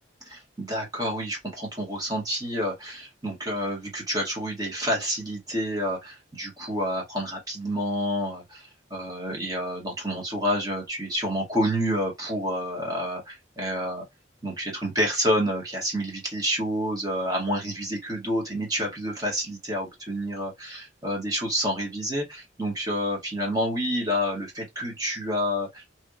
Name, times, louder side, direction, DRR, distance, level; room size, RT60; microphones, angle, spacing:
voice 1, 0.3-14.0 14.4-25.9, equal, 20° right, 1.7 m, -29 dB
3.2 x 3.0 x 2.5 m
head